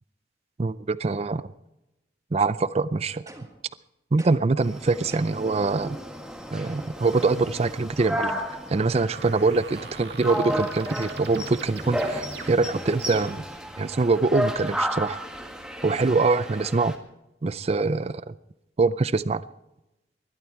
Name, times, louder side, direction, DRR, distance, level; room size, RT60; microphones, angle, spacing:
voice 1, 0.6-1.4 2.3-3.2 4.1-6.0 6.5-8.3 8.7-13.4 13.8-15.2 15.8-16.9 17.4-18.3 18.8-19.4, right 3 dB, 35° right, 16 dB, 0.4 m, -24 dB
sound 1, 3.3-3.7 4.2-4.6 5.1-5.5, right 2 dB, 20° right, 2.1 m, -46 dB
sound 2, 4.6-17.0, equal, 5° right, 1.8 m, -33 dB
sound 3, 9.1-13.6, right 5 dB, 60° right, 2.5 m, -43 dB
20.5 x 13.0 x 4.5 m, 0.94 s
head